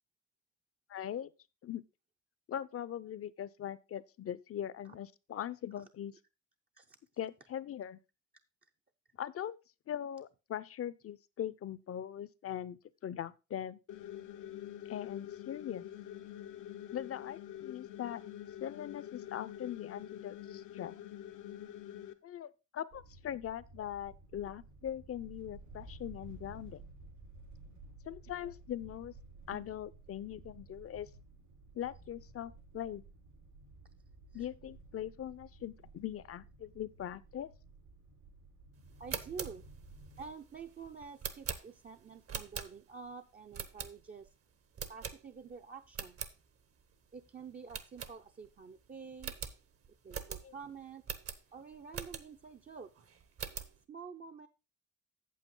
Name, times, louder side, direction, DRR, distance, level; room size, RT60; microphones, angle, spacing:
voice 1, 0.9-1.3 1.6-1.8 2.5-6.1 7.2-8.0 9.2-9.6 9.9-13.8 14.9-15.8 16.9-18.2 18.6-21.0 22.2-26.8 28.1-29.1 29.5-31.1 31.7-33.0 34.3-37.5 50.4-50.5, left 10 dB, 50° left, 0.6 m, -41 dB
sound 1, 13.9-22.1, left 11 dB, 85° left, 1.0 m, -46 dB
sound 2, 22.9-40.3, right 3 dB, 75° right, 4.8 m, -54 dB
sound 3, 38.9-43.1 43.5-44.3 44.7-45.5 45.8-46.3 46.8-46.9 47.1-47.3 47.7-48.6 48.8-48.9 49.2-52.5 52.9-53.8, right 7 dB, 50° right, 1.0 m, -43 dB
voice 2, 39.0-39.7 40.2-44.3 44.9-46.3 47.1-49.3 50.0-51.0 51.5-52.9 53.9-54.5, right 5 dB, 30° right, 0.6 m, -48 dB
8.5 x 7.5 x 3.7 m
cardioid pair, 90°, 30 cm